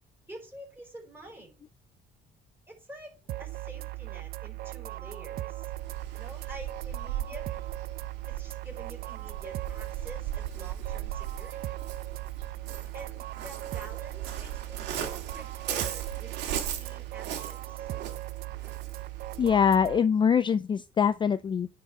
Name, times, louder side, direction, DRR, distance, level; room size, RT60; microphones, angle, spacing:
voice 1, 0.3-1.6 2.7-5.7 6.1-7.5 8.3-11.8 12.9-17.9, right 1 dB, 10° right, 4.8 m, -48 dB
sound 1, 3.3-20.0, right 16 dB, 65° right, 0.5 m, -38 dB
Waves surf, 5.7-19.5, right 10 dB, 85° right, 2.1 m, -38 dB
voice 2, 19.4-21.7, left 7 dB, 30° left, 0.4 m, -23 dB
9.8 x 4.8 x 4.9 m
cardioid pair, 110°, 17 cm